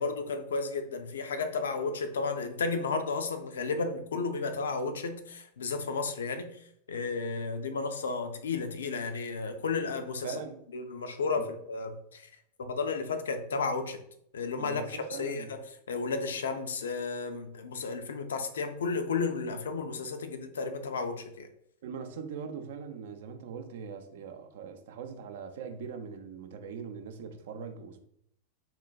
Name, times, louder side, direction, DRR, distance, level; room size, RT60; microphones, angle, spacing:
voice 1, 0.0-10.4 10.7-12.3 12.6-14.0 14.3-15.6 15.9-21.5, left 4 dB, 65° left, 0.3 m, -33 dB
voice 2, 10.2-10.6 11.4-11.5 14.6-15.5 21.8-28.0, right 6 dB, 55° right, 0.4 m, -41 dB
3.8 x 2.1 x 2.4 m
figure-of-eight pair, 90°, 0 cm